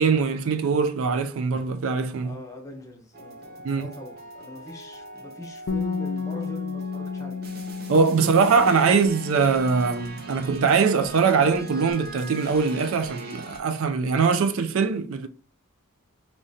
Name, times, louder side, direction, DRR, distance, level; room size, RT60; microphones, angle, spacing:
voice 1, 0.0-2.4 3.6-3.9 7.9-15.3, right 5 dB, 65° right, 0.4 m, -22 dB
voice 2, 2.2-7.5 8.2-9.0, left 1 dB, 15° left, 0.9 m, -41 dB
sound 1, 3.1-13.6, right 2 dB, 45° right, 0.7 m, -41 dB
Bass guitar, 5.7-11.9, left 5 dB, 55° left, 0.3 m, -34 dB
4.9 x 3.0 x 2.7 m
head